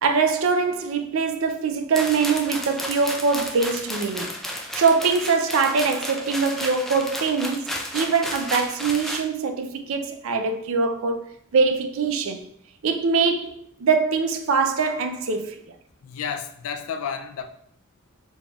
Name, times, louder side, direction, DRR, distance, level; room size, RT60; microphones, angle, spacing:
voice 1, 0.0-4.3 4.7-11.2 11.5-12.4 12.8-15.6, right 5 dB, 65° right, 0.4 m, -23 dB
sound 1, 1.9-9.2, equal, ahead, 0.3 m, -32 dB
voice 2, 16.0-17.5, left 7 dB, 75° left, 0.4 m, -31 dB
4.1 x 3.4 x 2.3 m
head